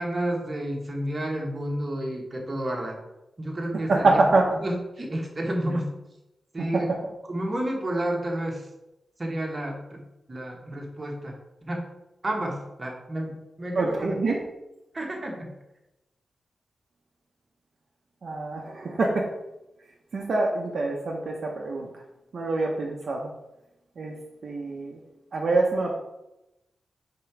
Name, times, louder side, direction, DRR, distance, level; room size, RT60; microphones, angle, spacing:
voice 1, 0.0-3.0 3.4-4.1 4.6-5.9 6.5-6.9 7.3-8.7 9.2-10.0 10.3-11.9 12.2-14.1 14.9-15.5, right 1 dB, 25° right, 0 dB, 1.1 m, -30 dB
voice 2, 3.9-4.5 6.6-7.0 13.7-14.4 18.2-19.3 20.1-21.9 22.3-23.3 24.0-25.0 25.3-25.9, right 3 dB, 55° right, 0 dB, 0.7 m, -25 dB
5.1 x 3.8 x 5.8 m, 0.93 s
wide cardioid pair, 175°, 0 cm